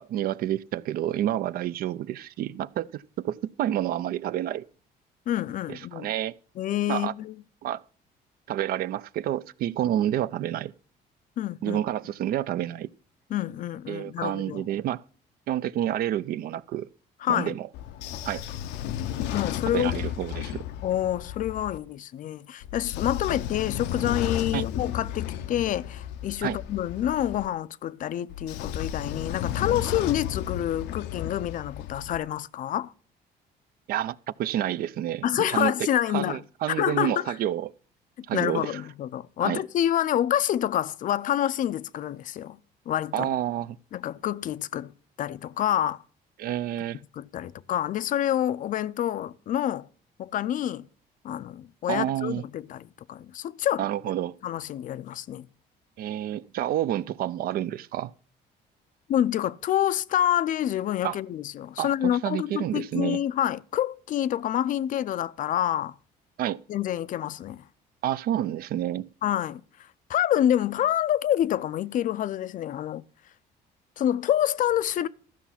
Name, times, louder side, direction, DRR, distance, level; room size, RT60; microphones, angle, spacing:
voice 1, 0.0-4.7 5.7-6.4 6.9-7.1 7.6-7.8 8.5-10.7 11.6-12.9 13.9-15.0 15.5-16.9 17.3-17.7 18.3-18.4 19.7-20.6 24.5-24.7 26.4-26.6 33.9-35.9 36.1-37.7 38.3-38.8 39.4-39.6 43.1-43.8 46.4-47.0 51.9-52.4 53.8-54.4 56.0-58.1 61.0-61.2 61.8-63.2 66.4-66.6 68.0-69.1, right 12 dB, 60° right, 0.4 m, -29 dB
voice 2, 5.3-6.1 6.6-7.3 11.4-11.8 13.3-14.6 17.2-17.6 19.3-19.9 20.8-32.9 35.2-36.4 36.7-37.3 38.3-42.6 42.9-43.3 43.9-44.9 45.2-46.0 47.1-49.9 50.2-50.8 51.2-53.9 54.4-55.5 59.1-66.0 66.7-67.6 69.2-69.6 70.1-73.0 74.0-75.1, left 11 dB, 50° left, 0.4 m, -27 dB
Train / Sliding door, 17.7-21.8 22.6-27.5 28.3-32.2, left 10 dB, 90° left, 0.6 m, -33 dB
13.5 x 6.0 x 5.7 m
cardioid pair, 110°, 17 cm